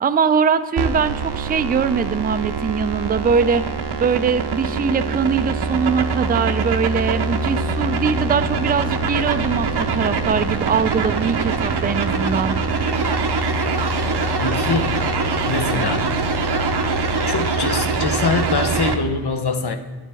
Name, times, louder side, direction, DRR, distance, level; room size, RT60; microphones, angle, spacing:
voice 1, 0.0-3.6 4.0-12.6, right 6 dB, 25° right, 11 dB, 0.3 m, -21 dB
sound 1, 0.8-18.9, right 4 dB, 65° right, 0.7 m, -23 dB
voice 2, 14.4-15.0 15.5-16.2 17.2-19.8, left 4 dB, 65° left, 7 dB, 0.8 m, -24 dB
9.9 x 7.4 x 3.4 m, 1.5 s
wide cardioid pair, 50°, 43 cm